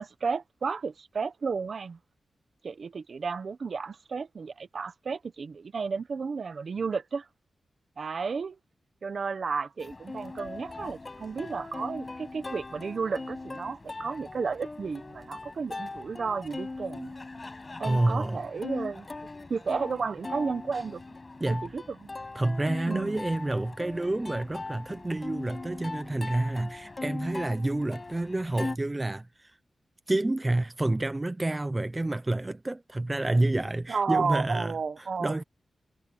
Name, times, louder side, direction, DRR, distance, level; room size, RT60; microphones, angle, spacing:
voice 1, 0.0-2.0 2.6-7.2 8.0-8.6 9.0-17.1 17.8-19.1 19.5-21.0 21.5-22.1 22.9-23.2 33.9-35.4, right 5 dB, 60° right, 1.2 m, -32 dB
Plucked string instrument, 9.8-28.8, left 3 dB, 30° left, 5.8 m, -40 dB
voice 2, 17.8-18.4 21.4-21.7 22.3-29.5 30.1-35.4, right 2 dB, 20° right, 0.7 m, -29 dB
wide cardioid pair, 105°, 0 cm